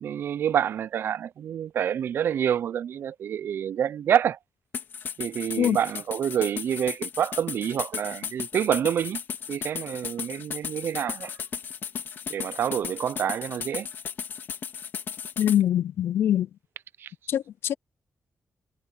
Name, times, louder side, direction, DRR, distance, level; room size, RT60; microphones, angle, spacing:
voice 1, 0.0-4.4 5.2-9.2 9.5-11.3 12.3-13.9 17.0-17.1, right 9 dB, 70° right, 0.4 m, -27 dB
sound 1, 4.7-15.6, left 7 dB, 65° left, 3.3 m, -35 dB
voice 2, 15.4-16.5 17.3-17.7, left 10 dB, 80° left, 0.5 m, -23 dB
wide cardioid pair, 140°, 4 cm